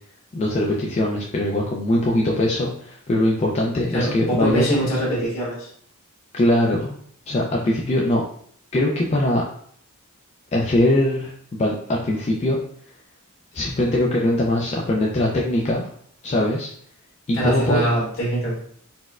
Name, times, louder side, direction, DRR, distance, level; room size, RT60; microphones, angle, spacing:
voice 1, 0.3-4.6 6.3-7.0 7.3-8.2 8.7-9.4 10.5-11.3 11.6-12.6 13.5-15.8 16.2-16.7 17.3-17.8, left 1 dB, 30° left, -3 dB, 0.3 m, -21 dB
voice 2, 3.9-5.7 17.3-18.5, right 1 dB, 65° left, -5 dB, 1.4 m, -23 dB
4.1 x 2.1 x 2.3 m, 0.62 s
head